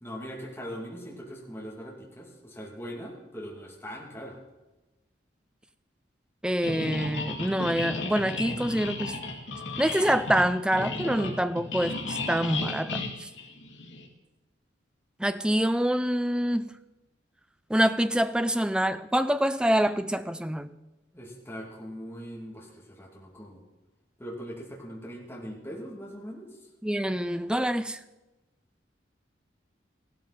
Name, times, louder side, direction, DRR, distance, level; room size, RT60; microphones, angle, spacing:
voice 1, 0.0-4.4 21.1-23.6 24.2-26.5, equal, 15° left, 2.7 m, -41 dB
voice 2, 6.4-9.2 9.8-13.3 15.2-16.7 17.7-20.7 26.8-28.0, equal, 5° right, 0.5 m, -26 dB
sound 1, 6.6-14.1, left 2 dB, 85° left, 2.3 m, -34 dB
15.0 x 12.5 x 4.3 m
head